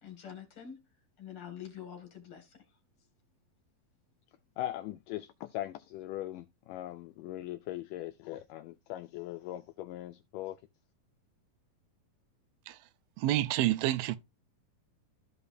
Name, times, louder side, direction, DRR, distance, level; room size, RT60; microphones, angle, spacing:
voice 1, 0.0-0.8 1.2-2.6, left 9 dB, 40° left, 2.7 m, -46 dB
voice 2, 4.6-10.6, left 14 dB, 80° left, 1.9 m, -40 dB
voice 3, 13.2-14.2, right 14 dB, 85° right, 2.4 m, -28 dB
14.5 x 4.9 x 2.7 m
omnidirectional pair, 4.2 m